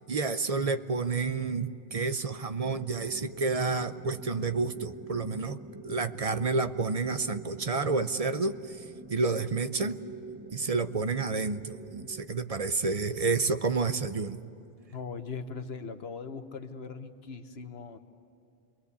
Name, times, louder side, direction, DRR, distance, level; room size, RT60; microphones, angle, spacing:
voice 1, 0.1-5.6 5.8-8.5 9.1-10.0 10.5-14.4, right 4 dB, 40° right, 10 dB, 0.7 m, -29 dB
sound 1, 2.6-12.2, right 2 dB, 20° right, 1.4 m, -46 dB
voice 2, 14.9-18.0, left 5 dB, 80° left, 8 dB, 1.2 m, -40 dB
27.5 x 21.5 x 8.3 m, 2.7 s
omnidirectional pair, 1.0 m